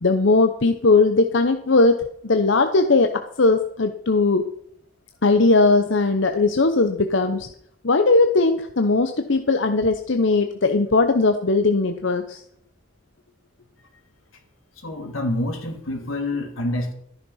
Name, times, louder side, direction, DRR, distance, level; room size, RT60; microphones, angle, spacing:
voice 1, 0.0-4.5 5.2-7.5 7.8-12.4, left 3 dB, 60° left, 7 dB, 0.8 m, -19 dB
voice 2, 14.8-16.9, left 1 dB, 85° left, 4 dB, 2.9 m, -27 dB
13.5 x 10.5 x 5.7 m, 0.70 s
head